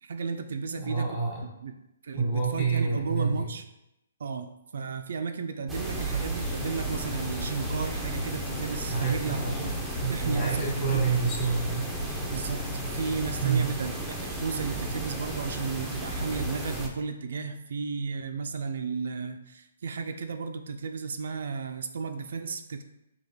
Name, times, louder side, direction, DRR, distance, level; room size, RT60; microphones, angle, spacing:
voice 1, 0.0-1.1 1.4-1.8 2.0-3.6 4.2-11.1 12.3-13.9 14.2-22.8, right 5 dB, 70° right, 7 dB, 0.3 m, -34 dB
voice 2, 0.7-1.4 2.1-3.4 8.9-9.7 10.0-11.9 13.4-13.7, right 5 dB, 20° left, -5 dB, 1.2 m, -28 dB
sound 1, 5.7-16.9, right 1 dB, 5° right, 0.5 m, -34 dB
sound 2, 6.6-13.5, left 3 dB, 80° left, 0.4 m, -39 dB
4.0 x 2.9 x 3.4 m, 0.88 s
hypercardioid pair, 160°, 0 cm